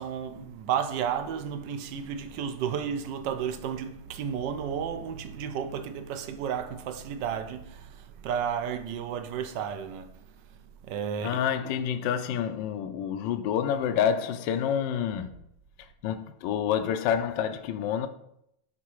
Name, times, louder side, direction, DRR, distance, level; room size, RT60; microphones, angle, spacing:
voice 1, 0.0-11.7, right 8 dB, 75° right, 1.4 m, -33 dB
voice 2, 11.2-15.3 15.8-18.1, left 8 dB, 80° left, 1.3 m, -28 dB
12.0 x 4.1 x 4.7 m
omnidirectional pair, 2.1 m